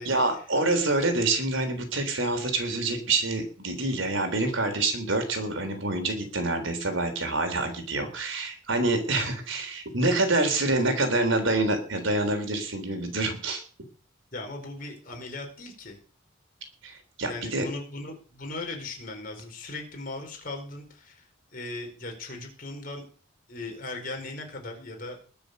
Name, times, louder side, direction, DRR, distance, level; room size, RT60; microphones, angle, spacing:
voice 1, 0.1-13.6 16.8-17.7, right 2 dB, 75° right, 7 dB, 3.8 m, -26 dB
voice 2, 14.3-16.0 17.3-21.3 21.5-23.0 23.5-25.2, left 2 dB, 45° left, 2 dB, 4.8 m, -38 dB
21.0 x 7.1 x 6.6 m, 0.40 s
head